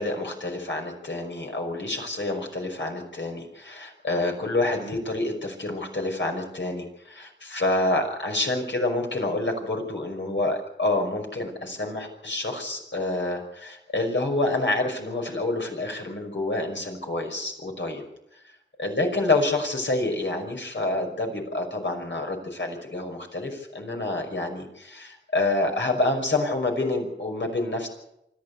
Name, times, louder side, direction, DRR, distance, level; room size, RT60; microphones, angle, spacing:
voice 1, 0.0-18.0 18.8-27.9, left 2 dB, 75° left, 2 dB, 5.6 m, -28 dB
25.0 x 14.0 x 8.2 m, 0.83 s
wide cardioid pair, 40°, 19 cm